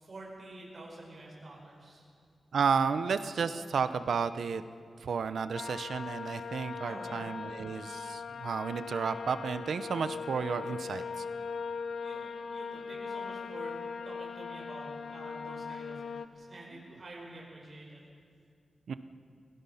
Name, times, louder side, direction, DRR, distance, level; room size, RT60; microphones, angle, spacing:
voice 1, 0.0-2.1 6.8-7.2 12.0-13.7 14.0-16.0 16.3-18.0, right 2 dB, 40° right, -2 dB, 4.8 m, -48 dB
voice 2, 2.5-4.6 5.0-11.2 16.7-16.8 18.9-19.0, right 6 dB, 80° right, 11 dB, 0.9 m, -32 dB
sound 1, 5.5-16.3, left 5 dB, 70° left, 0.9 m, -40 dB
29.5 x 17.5 x 5.7 m, 2.2 s
wide cardioid pair, 175°, 0 cm